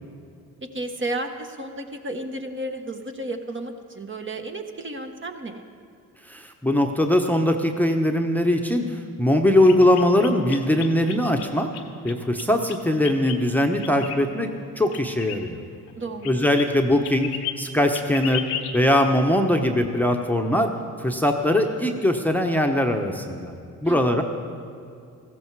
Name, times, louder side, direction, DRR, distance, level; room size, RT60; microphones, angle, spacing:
voice 1, 0.6-5.6 16.0-16.4 23.8-24.2, right 2 dB, 30° right, 4 dB, 1.2 m, -33 dB
voice 2, 6.3-11.7 12.0-14.5 14.8-15.6 16.2-18.4 18.7-20.7 21.0-23.5 23.8-24.2, left 1 dB, 5° left, 4 dB, 1.0 m, -21 dB
sound 1, 9.6-11.5 11.7-13.4 13.8-14.2 14.9-15.9 16.2-16.7 16.9-17.6 17.9-18.8, left 10 dB, 80° left, 1.0 m, -34 dB
14.5 x 14.0 x 4.7 m, 2.3 s
supercardioid pair, 65°, 38 cm